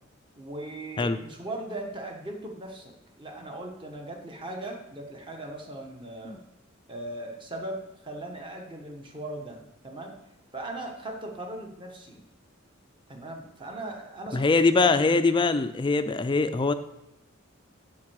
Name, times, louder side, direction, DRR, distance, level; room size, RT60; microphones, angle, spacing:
voice 1, 0.4-6.4 6.9-10.1 10.5-12.2 13.1-14.9, right 1 dB, 25° right, 2 dB, 1.2 m, -39 dB
voice 2, 14.3-16.7, left 3 dB, 25° left, 11 dB, 0.4 m, -23 dB
7.3 x 4.5 x 6.3 m, 0.87 s
head